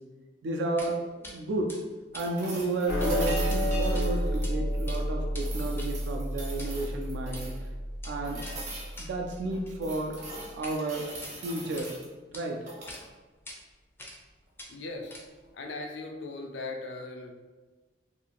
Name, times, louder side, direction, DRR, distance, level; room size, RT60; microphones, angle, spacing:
voice 1, 0.4-1.7 2.1-7.5 8.0-8.4 9.0-10.2 10.5-11.1 11.4-11.9 12.3-12.7, right 2 dB, 75° right, 2 dB, 0.3 m, -32 dB
sound 1, 0.8-0.9 1.2-1.4 1.7-3.1 3.4-3.6 3.9-4.5 4.8-10.8 11.1-11.9 12.3-12.4 12.9-13.0 13.5-13.6 14.0-14.3 14.6-15.5, left 1 dB, 15° left, 0.4 m, -46 dB
sound 2, 2.2-5.0 5.4-7.7 8.2-9.0 9.5-12.1 12.6-13.0 15.0-15.1, right 2 dB, 40° right, 0.7 m, -42 dB
sound 3, 2.9-9.4, equal, 70° left, 0.8 m, -30 dB
voice 2, 14.7-15.2 15.5-17.3, left 2 dB, 85° left, 4 dB, 0.4 m, -38 dB
2.6 x 2.4 x 2.9 m, 1.3 s
head